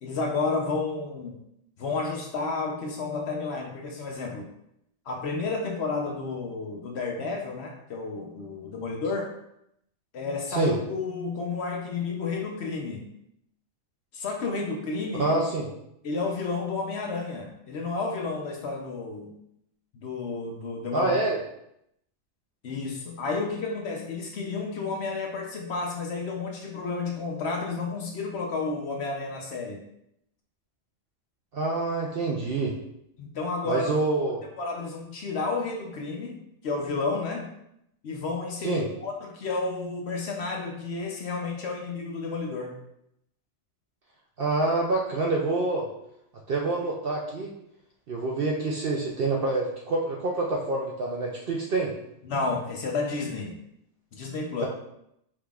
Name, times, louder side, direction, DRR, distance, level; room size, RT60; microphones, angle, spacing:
voice 1, 0.0-1.4 1.8-4.5 5.1-9.3 10.1-13.0 14.1-15.4 16.0-19.3 19.9-21.1 22.6-29.8 33.2-33.9 34.6-37.5 38.0-42.7 52.2-53.5 54.1-54.7, left 4 dB, 60° left, 0 dB, 0.8 m, -31 dB
voice 2, 15.2-15.7 20.9-21.4 31.5-32.8 33.7-34.4 38.6-38.8 44.4-45.9 46.5-47.5 48.1-51.9, right 2 dB, 60° right, -2 dB, 0.6 m, -26 dB
4.8 x 3.7 x 2.3 m, 0.77 s
omnidirectional pair, 1.4 m